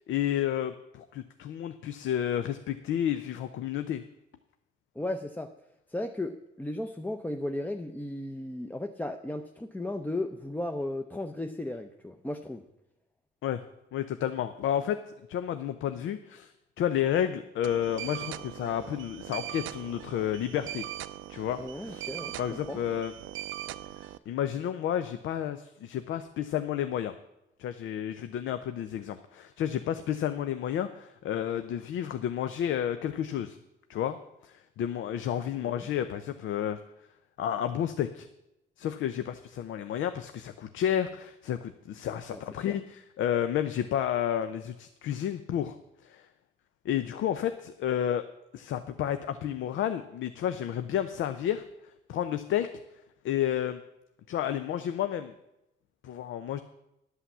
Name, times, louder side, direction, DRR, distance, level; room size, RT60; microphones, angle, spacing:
voice 1, 0.1-4.0 13.4-13.6 13.9-15.0 15.3-16.5 16.8-20.8 21.3-22.1 22.4-23.1 24.0-27.1 27.6-33.6 33.9-34.2 34.4-36.8 37.4-38.3 38.8-45.8 46.0-46.3 46.8-48.2 48.5-51.6 52.1-52.7 53.2-53.8 54.3-55.3 56.0-56.6, left 10 dB, 75° left, 10 dB, 0.6 m, -31 dB
voice 2, 5.0-5.5 5.9-12.6 21.6-22.8 35.6-35.9 42.3-42.8, left 1 dB, 10° left, 5 dB, 0.6 m, -35 dB
sound 1, 17.6-24.2, right 14 dB, 80° right, 0.5 m, -40 dB
11.0 x 5.8 x 7.3 m, 0.89 s
cardioid pair, 90°, 20 cm